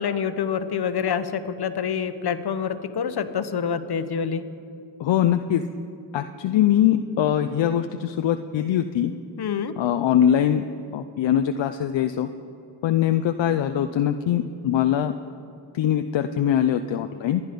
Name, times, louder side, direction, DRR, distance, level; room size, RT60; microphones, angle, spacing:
voice 1, 0.0-4.5 9.4-9.7, left 7 dB, 55° left, 11 dB, 1.1 m, -27 dB
voice 2, 5.0-5.6 6.1-9.1 9.8-10.6 10.9-12.3 12.8-15.1 15.7-17.4, left 10 dB, 75° left, 8 dB, 0.6 m, -22 dB
26.0 x 9.5 x 5.2 m, 2.6 s
cardioid pair, 55°, 45 cm